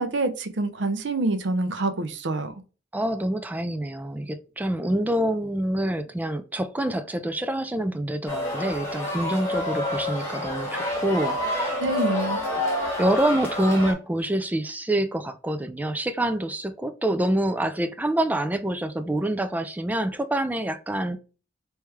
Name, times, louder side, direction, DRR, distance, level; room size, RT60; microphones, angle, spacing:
voice 1, 0.0-2.5 11.8-12.4, right 2 dB, 65° right, 0.7 m, -26 dB
voice 2, 2.9-11.8 12.5-12.6 13.0-21.2, right 1 dB, 10° right, 0.4 m, -26 dB
sound 1, 8.3-13.9, left 1 dB, 15° left, 1.3 m, -28 dB
3.2 x 3.1 x 3.4 m
head